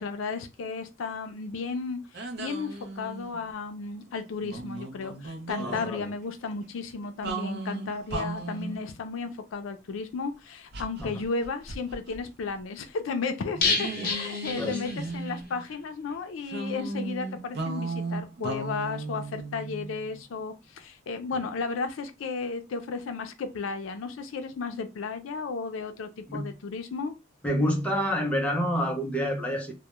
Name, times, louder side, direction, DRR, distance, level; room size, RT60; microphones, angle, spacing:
voice 1, 0.0-27.1, left 4 dB, 90° left, 0.4 m, -34 dB
sound 1, 2.1-3.4 4.4-5.9 7.2-8.8 10.7-12.2 12.5-12.6 13.5-15.7 16.5-20.2, right 2 dB, 60° right, 0.5 m, -36 dB
voice 2, 5.6-6.1 11.0-11.2 13.6-14.1 14.6-14.8 26.3-26.5 27.4-29.7, equal, 5° left, 0.5 m, -28 dB
sound 2, 13.6-15.4 15.7-15.8 16.1-16.2, left 4 dB, 50° left, 0.6 m, -29 dB
2.2 x 2.1 x 2.9 m
head